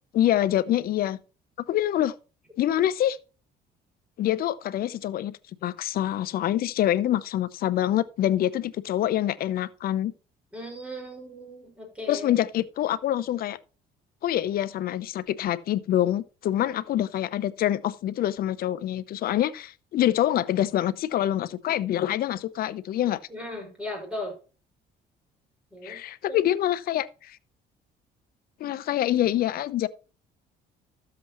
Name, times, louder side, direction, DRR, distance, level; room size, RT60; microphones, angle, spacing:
voice 1, 0.1-1.2 1.7-2.1 2.6-3.2 4.2-5.3 5.6-10.1 12.1-13.6 14.2-23.2 25.8-27.4 28.6-29.9, left 12 dB, 60° left, 0.8 m, -25 dB
voice 2, 10.5-12.3 23.3-24.4 25.7-26.0 26.3-26.4, left 1 dB, 5° right, 5.5 m, -37 dB
12.5 x 7.7 x 3.0 m
cardioid pair, 110°, 17 cm